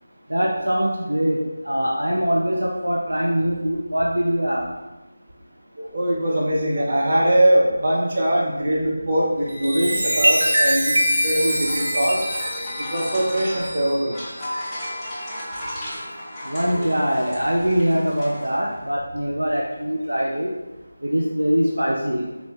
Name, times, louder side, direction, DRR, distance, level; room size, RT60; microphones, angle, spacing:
voice 1, 0.3-4.7 16.5-20.5 21.0-22.3, equal, 90° right, -2 dB, 0.6 m, -22 dB
voice 2, 5.8-12.2 12.9-14.1, right 1 dB, 45° right, -3 dB, 1.0 m, -21 dB
Chime, 9.4-15.4 15.9-16.2, equal, 70° right, 1.0 m, -24 dB
sound 1, 11.3-18.9, equal, 5° left, 0.7 m, -35 dB
4.2 x 2.9 x 3.5 m, 1.1 s
figure-of-eight pair, 165°, 0 cm